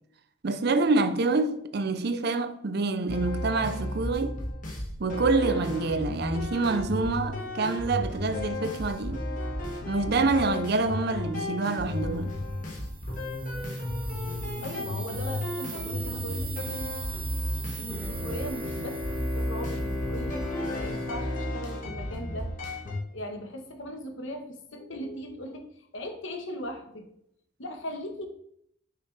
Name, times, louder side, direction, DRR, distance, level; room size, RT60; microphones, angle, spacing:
voice 1, 0.4-4.4 5.0-9.3 9.9-12.4, right 3 dB, 55° right, 0.5 m, -27 dB
sound 1, 3.1-23.0, left 1 dB, 40° left, 1.4 m, -33 dB
sound 2, 12.4-20.4, right 7 dB, 90° right, 1.6 m, -42 dB
voice 2, 14.6-16.9 17.8-20.4 20.7-22.5 23.1-27.0 27.6-28.3, equal, 75° left, 1.2 m, -38 dB
Bowed string instrument, 17.9-22.8, left 2 dB, ahead, 1.9 m, -37 dB
6.0 x 6.0 x 3.2 m
head